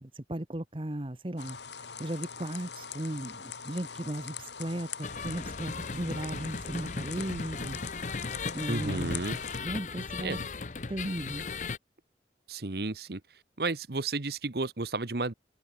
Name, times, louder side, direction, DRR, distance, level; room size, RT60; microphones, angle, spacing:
voice 1, 0.0-1.6 2.0-8.1 8.5-9.2 9.6-10.4 10.9-11.5, right 1 dB, 30° right, 1.1 m, -36 dB
sound 1, 1.4-9.6, left 6 dB, 85° left, 3.6 m, -43 dB
sound 2, 5.0-11.8, left 4 dB, 45° left, 0.8 m, -37 dB
voice 2, 8.7-9.4 10.2-10.4 12.5-13.2 13.6-15.3, right 3 dB, 60° right, 1.1 m, -32 dB
head